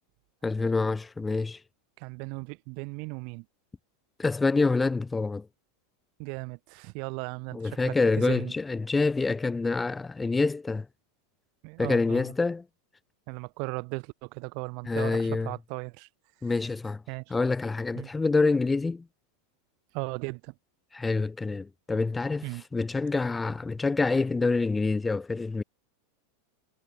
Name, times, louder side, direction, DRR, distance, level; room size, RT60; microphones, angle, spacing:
voice 1, 0.4-1.6 4.2-5.5 7.5-10.9 11.8-12.6 14.9-15.5 16.4-17.0 17.3-19.0 20.9-25.6, left 3 dB, 15° left, 0.7 m, -26 dB
voice 2, 2.0-3.5 6.2-8.5 11.6-12.3 13.3-16.1 17.1-17.3 18.0-18.1 19.9-20.5 22.4-22.6, right 36 dB, 55° right, 0.8 m, -37 dB
hypercardioid pair, 100°, 0 cm